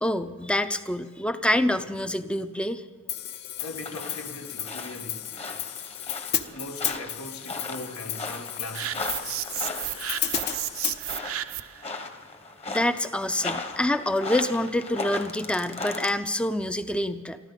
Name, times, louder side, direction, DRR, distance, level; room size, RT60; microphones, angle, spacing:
voice 1, 0.0-2.8 12.7-17.4, left 1 dB, 5° left, 0.5 m, -26 dB
Hi-hat, 3.1-11.0, left 10 dB, 50° left, 0.8 m, -33 dB
voice 2, 3.6-5.3 6.5-9.4, left 2 dB, 80° left, 1.6 m, -40 dB
sound 1, 3.6-16.1, left 3 dB, 25° left, 1.2 m, -37 dB
sound 2, 8.7-11.8, right 13 dB, 70° right, 0.6 m, -33 dB
23.0 x 14.5 x 4.0 m
head